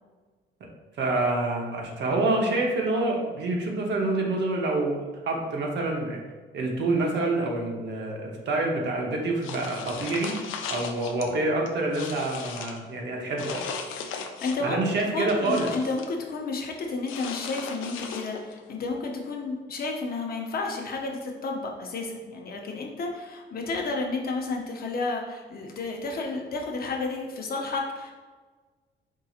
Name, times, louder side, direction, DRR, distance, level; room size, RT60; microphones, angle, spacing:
voice 1, 1.0-5.0 5.2-6.2 6.5-10.4 10.7-13.6 14.6-15.7, right 2 dB, 60° right, 0 dB, 0.8 m, -27 dB
sound 1, 9.4-11.3 11.7-12.8 13.4-14.7 15.1-16.1 17.1-18.6, left 6 dB, 85° left, 0.4 m, -37 dB
voice 2, 14.4-28.1, left 3 dB, 50° left, 1 dB, 0.7 m, -31 dB
4.6 x 2.8 x 2.4 m, 1.4 s
cardioid pair, 90°, 20 cm